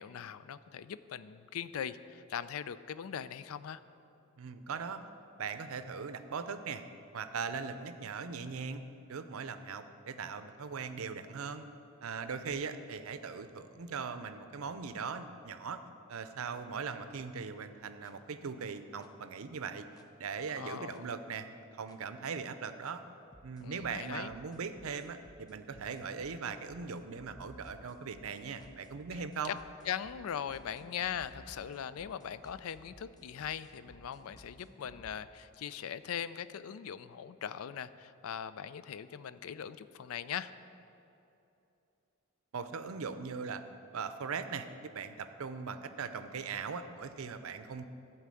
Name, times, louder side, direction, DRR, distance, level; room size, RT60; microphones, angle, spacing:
voice 1, 0.0-3.8 20.5-21.1 23.6-24.3 29.1-29.6 29.8-40.5, left 8 dB, 70° left, 15 dB, 0.4 m, -40 dB
voice 2, 4.4-5.0 5.4-6.8 7.1-8.8 9.1-11.6 12.0-15.8 16.1-19.9 20.2-21.5 21.7-23.0 23.4-29.6 42.5-43.6 43.9-47.8, right 5 dB, 70° right, 10 dB, 0.6 m, -40 dB
sound 1, 18.0-18.1 19.0-19.1 20.0-20.1 20.9-21.0 21.9-22.0 22.8-22.9 23.3-35.1, equal, 20° left, 0.6 m, -58 dB
11.5 x 4.6 x 7.6 m, 2.9 s
head